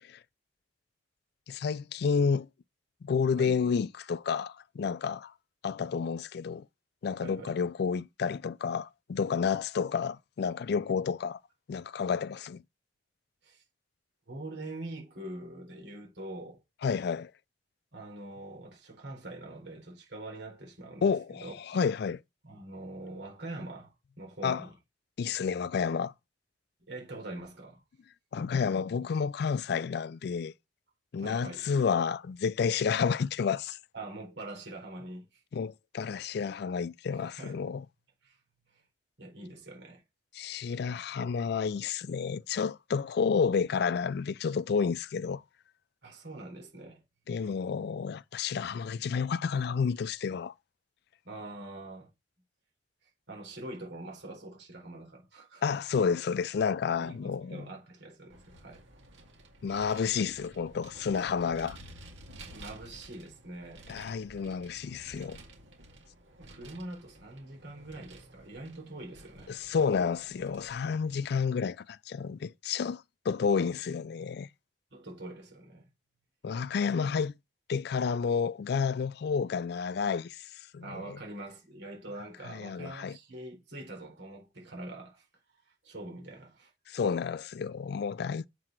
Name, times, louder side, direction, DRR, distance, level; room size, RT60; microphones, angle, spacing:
voice 1, 1.5-2.5 3.0-5.3 5.6-6.6 7.0-11.4 11.7-12.6 16.8-17.3 21.0-22.2 24.4-24.6 25.2-26.1 28.3-30.5 31.1-33.8 35.5-37.8 40.3-45.4 47.3-50.5 55.6-57.6 59.6-61.8 63.9-65.4 69.5-74.5 76.4-77.3 77.7-81.2 82.5-83.2 86.9-88.5, left 6 dB, 60° left, 0.4 m, -30 dB
voice 2, 7.2-7.6 13.4-13.6 14.3-16.6 17.9-21.8 22.4-24.7 26.9-27.8 31.2-31.7 33.9-35.4 37.1-37.6 38.2-38.4 39.2-40.0 46.0-47.0 51.2-52.1 53.0-55.6 57.0-58.8 62.5-63.9 66.4-69.6 74.9-75.9 77.0-77.1 80.8-85.3 85.7-86.7, right 2 dB, 70° right, 4.0 m, -44 dB
Vehicle, 58.3-71.5, right 1 dB, 90° right, 2.3 m, -52 dB
7.5 x 5.9 x 4.5 m
head